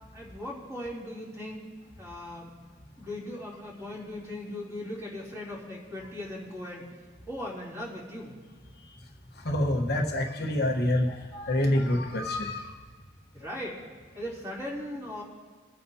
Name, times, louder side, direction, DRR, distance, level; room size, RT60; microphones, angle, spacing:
voice 1, 0.1-1.7 2.0-2.5 3.0-6.8 7.3-8.4 13.3-13.8 14.1-15.2, left 1 dB, 15° right, -6 dB, 3.2 m, -38 dB
voice 2, 9.4-12.7, left 1 dB, 60° left, 1 dB, 1.2 m, -27 dB
25.5 x 9.0 x 2.8 m, 1.5 s
head